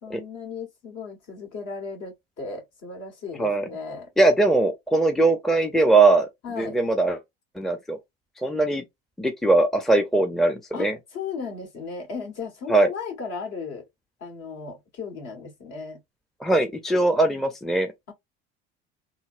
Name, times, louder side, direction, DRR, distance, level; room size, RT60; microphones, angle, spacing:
voice 1, 0.0-4.1 6.4-6.8 10.7-13.9 14.2-16.0, left 5 dB, 50° left, 1.8 m, -36 dB
voice 2, 4.2-6.3 6.6-7.2 7.6-8.0 8.4-8.8 9.2-10.9 12.7-12.9 16.4-17.9, right 2 dB, ahead, 0.6 m, -20 dB
3.8 x 2.2 x 2.6 m
hypercardioid pair, 70°, 32 cm